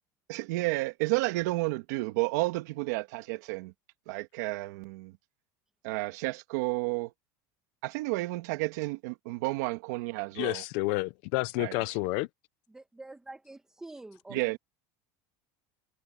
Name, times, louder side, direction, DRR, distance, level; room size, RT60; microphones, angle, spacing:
voice 1, 0.3-3.7 4.1-5.2 5.8-7.1 7.8-10.6 11.6-11.8 14.3-14.6, right 21 dB, 75° right, 2.2 m, -31 dB
voice 2, 10.3-12.3, left 22 dB, 60° left, 0.8 m, -30 dB
voice 3, 12.7-14.6, right 2 dB, 5° right, 1.5 m, -47 dB
cardioid pair, 155°, 9 cm